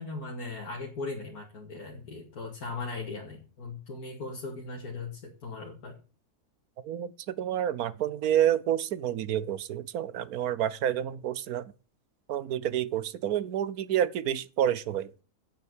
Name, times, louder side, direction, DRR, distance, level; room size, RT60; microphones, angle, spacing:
voice 1, 0.0-6.0, left 3 dB, 70° left, 2.4 m, -38 dB
voice 2, 6.8-11.7 12.3-15.1, right 10 dB, 70° right, 1.2 m, -29 dB
8.6 x 8.3 x 8.3 m
omnidirectional pair, 1.6 m